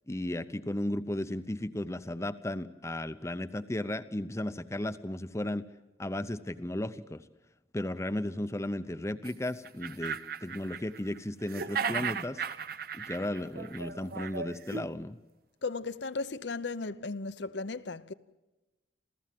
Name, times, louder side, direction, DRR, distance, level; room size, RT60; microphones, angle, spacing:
voice 1, 0.1-5.6 6.0-7.2 7.7-12.4 12.9-15.2, left 1 dB, 15° left, 0.7 m, -35 dB
sound 1, 9.2-9.3 9.6-11.2 11.5-14.8, right 6 dB, 50° right, 0.8 m, -36 dB
voice 2, 15.6-18.1, left 3 dB, 65° left, 0.8 m, -36 dB
28.5 x 15.0 x 7.6 m
head